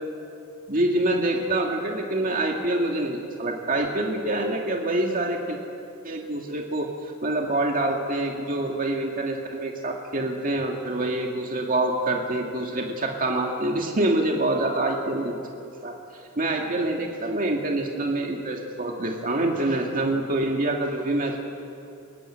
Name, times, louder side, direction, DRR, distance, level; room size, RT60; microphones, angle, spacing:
voice 1, 0.7-5.6 6.0-15.3 15.8-16.0 16.4-21.4, right 2 dB, 40° right, 1 dB, 2.1 m, -26 dB
29.0 x 16.5 x 9.8 m, 2.6 s
head